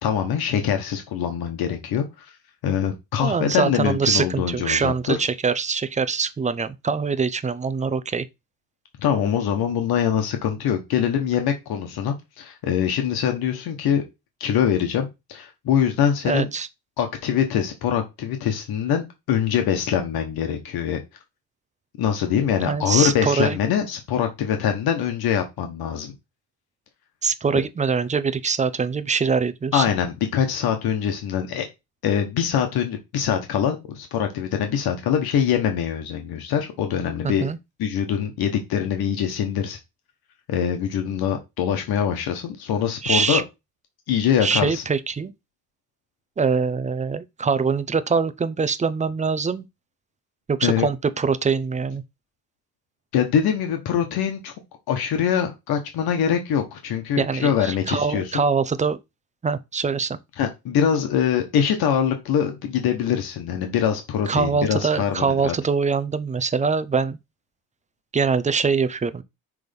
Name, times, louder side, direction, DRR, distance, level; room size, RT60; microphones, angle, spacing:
voice 1, 0.0-2.0 2.6-5.2 9.0-14.0 14.4-16.5 17.0-21.0 22.0-26.1 29.7-31.7 32.0-37.5 37.8-39.8 40.5-43.4 44.1-44.8 50.6-50.9 53.1-54.5 54.9-58.4 60.4-65.5, left 8 dB, 80° left, 1.3 m, -23 dB
voice 2, 3.2-8.3 16.2-16.7 22.6-23.6 27.2-29.9 37.2-37.6 43.0-43.4 44.4-45.3 46.4-49.7 50.5-52.0 57.2-59.0 59.4-60.2 64.3-67.2 68.1-69.2, right 5 dB, 20° right, 0.5 m, -23 dB
6.1 x 3.5 x 5.2 m
cardioid pair, 125°, 36 cm